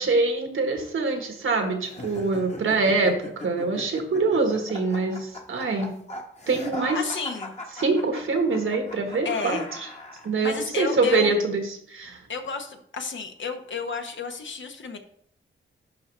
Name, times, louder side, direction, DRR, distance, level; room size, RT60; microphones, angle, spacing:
voice 1, 0.0-5.9 6.5-7.0 7.8-9.6 10.2-12.2, right 3 dB, 75° right, 4 dB, 1.5 m, -24 dB
sound 1, 1.8-10.3, left 1 dB, 35° left, 1.3 m, -39 dB
voice 2, 6.9-7.5 9.2-9.7 10.4-11.3 12.3-15.0, left 4 dB, 65° left, 5 dB, 1.0 m, -31 dB
11.5 x 4.4 x 3.3 m, 0.67 s
wide cardioid pair, 85°, 21 cm